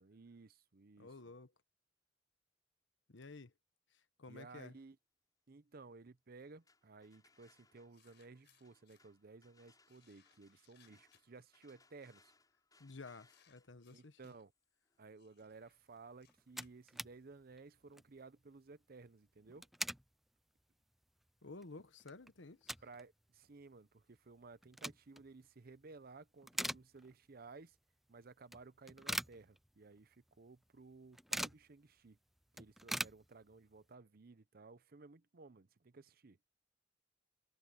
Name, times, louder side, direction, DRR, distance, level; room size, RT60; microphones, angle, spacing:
voice 1, 0.0-1.1 4.3-5.0 5.5-12.3 13.9-14.5 15.0-19.7 22.8-27.8 28.1-32.2 32.5-36.4, right 3 dB, 55° right, 0.7 m, -57 dB
voice 2, 1.0-1.5 3.1-3.5 4.2-4.8 12.8-14.3 21.4-22.7, left 3 dB, 85° left, 1.2 m, -53 dB
sound 1, 6.4-16.2, left 3 dB, 20° left, 6.9 m, -73 dB
sound 2, 7.3-7.4 7.9-9.0 9.8-11.4 12.3-12.6 13.2-14.4 15.2-17.4, left 10 dB, 65° left, 5.4 m, -73 dB
sound 3, 16.0-16.1 16.2-17.2 17.5-17.6 17.9-18.2 19.4-20.1 20.6-20.7 21.2-21.3 21.6-23.0 23.3-23.4 24.4-25.3 25.7-26.0 26.3-27.4 27.7-27.8 28.5-30.0 30.3-30.4 30.6-31.7 32.1-32.2 32.4-33.8, equal, ahead, 0.3 m, -43 dB
head